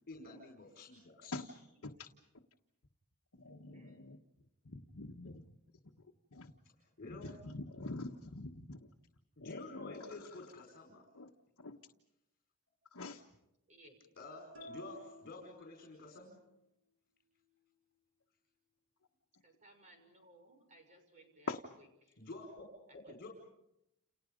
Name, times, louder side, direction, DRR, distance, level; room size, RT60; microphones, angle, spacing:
voice 1, 0.1-1.4 6.8-7.4 9.4-11.0 14.2-16.4 22.2-22.7 22.9-23.3, left 2 dB, 45° left, 1 dB, 5.1 m, -50 dB
voice 2, 1.7-2.0 3.5-4.1 13.7-14.0 19.4-22.2 22.9-23.3, right 1 dB, 35° right, 4 dB, 6.4 m, -63 dB
voice 3, 3.3-4.2 4.6-5.4 6.3-6.5 7.1-8.9 9.4-10.3 11.1-11.3 11.6-11.8 12.9-13.2 14.6-14.7 21.5-21.6, left 2 dB, 65° left, 2 dB, 1.5 m, -45 dB
sound 1, 14.5-16.3, equal, 65° right, 5.5 m, -54 dB
29.5 x 29.5 x 5.3 m, 0.86 s
head